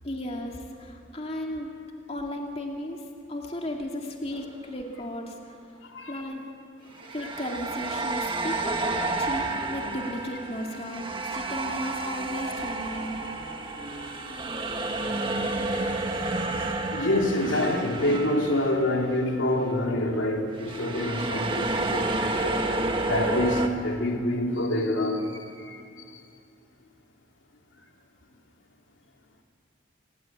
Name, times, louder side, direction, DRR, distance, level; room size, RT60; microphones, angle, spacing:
voice 1, 0.0-1.7 2.1-5.6 6.1-6.4 7.1-13.2, left 1 dB, 30° left, 2.4 m, -35 dB
sound 1, 4.3-4.5 7.0-19.4 19.6-19.8 20.6-23.7, right 2 dB, 25° right, 1.7 m, -30 dB
voice 2, 5.9-6.3 7.0-7.1 9.5-9.6 15.7-22.7 23.1-25.8 26.1-26.2, left 1 dB, 75° left, 2.9 m, -27 dB
29.0 x 22.0 x 9.3 m
head